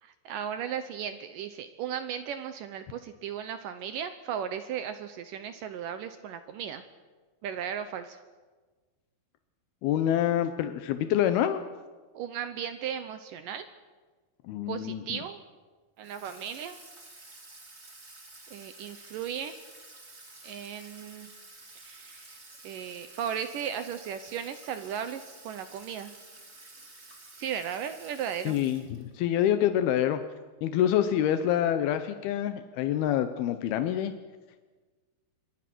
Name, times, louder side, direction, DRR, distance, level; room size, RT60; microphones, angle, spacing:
voice 1, 0.0-6.8 7.4-8.2 12.1-13.7 14.7-15.4 16.0-16.8 18.5-19.5 20.4-21.3 21.8-22.4 22.6-26.1 27.4-28.6, right 8 dB, 70° right, 10 dB, 2.4 m, -36 dB
voice 2, 9.8-11.6 14.4-15.2 28.5-30.2 30.6-34.1, left 11 dB, 85° left, 9 dB, 2.8 m, -26 dB
Water tap faucet / Sink (filling or washing), 16.0-29.2, right 2 dB, 20° right, 2.4 m, -51 dB
26.0 x 23.0 x 6.2 m, 1.4 s
omnidirectional pair, 4.4 m